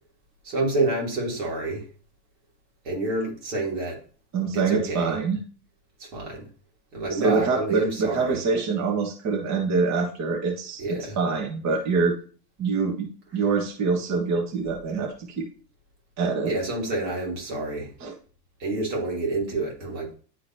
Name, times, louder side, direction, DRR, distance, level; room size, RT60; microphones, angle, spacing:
voice 1, 0.4-1.8 2.8-4.0 4.5-5.2 6.0-6.5 6.9-8.4 10.8-11.2 16.4-17.9 18.6-20.2, right 2 dB, 80° right, -2 dB, 3.2 m, -28 dB
voice 2, 4.3-5.4 7.2-12.1 12.6-13.1 13.3-15.5 16.2-16.5 18.0-18.1, right 4 dB, 35° right, 2 dB, 1.5 m, -25 dB
10.5 x 3.9 x 2.8 m, 0.40 s
hypercardioid pair, 100°, 49 cm